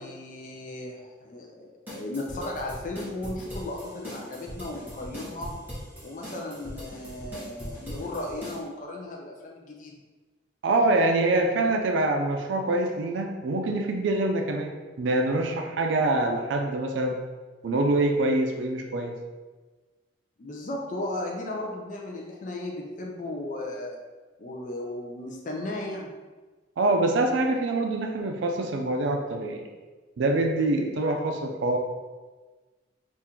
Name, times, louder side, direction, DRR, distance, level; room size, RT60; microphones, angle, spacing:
voice 1, 0.0-5.6 6.0-10.0 20.4-24.0 24.4-26.1, left 1 dB, 45° left, 0 dB, 0.4 m, -35 dB
sound 1, 1.9-8.6, equal, 10° right, 1.2 m, -40 dB
voice 2, 10.6-14.7 15.0-17.2 17.6-19.1 26.8-29.6 30.2-31.8, right 2 dB, 85° right, 3 dB, 0.4 m, -25 dB
3.6 x 2.5 x 4.3 m, 1.3 s
head